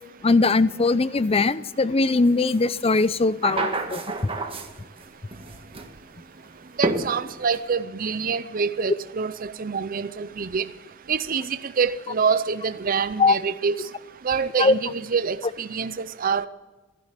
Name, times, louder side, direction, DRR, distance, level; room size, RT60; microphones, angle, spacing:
voice 1, 0.2-4.0 13.2-13.4 14.6-14.7, left 3 dB, 30° left, 0.5 m, -20 dB
sound 1, 2.5-2.6 2.9-5.0 5.3-5.9 6.8-7.6, right 2 dB, 25° right, 1.7 m, -29 dB
voice 2, 6.8-10.7 11.1-13.8 14.2-16.5, right 5 dB, 45° right, 0.5 m, -26 dB
15.5 x 11.5 x 8.2 m
head